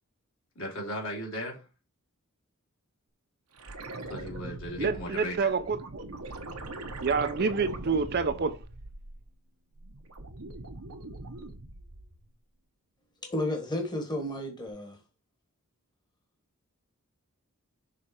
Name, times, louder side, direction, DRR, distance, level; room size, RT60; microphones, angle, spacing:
voice 1, 0.5-1.7 4.1-5.5, equal, 60° left, 3.0 m, -37 dB
sound 1, 3.6-9.4 9.7-12.3 14.7-14.8, right 2 dB, 80° right, 1.1 m, -42 dB
voice 2, 4.8-6.0 7.0-8.6, right 5 dB, 45° right, 0.6 m, -28 dB
voice 3, 13.2-15.0, left 1 dB, 20° left, 1.4 m, -32 dB
6.5 x 3.8 x 4.2 m
head